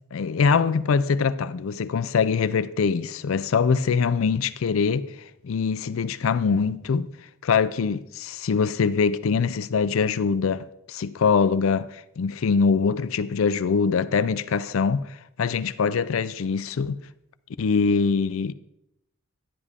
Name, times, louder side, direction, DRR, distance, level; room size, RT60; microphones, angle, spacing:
voice 1, 0.1-5.1 5.4-7.1 7.4-17.0 17.6-18.5, left 5 dB, 70° left, 0.4 m, -23 dB
11.0 x 10.0 x 3.6 m
head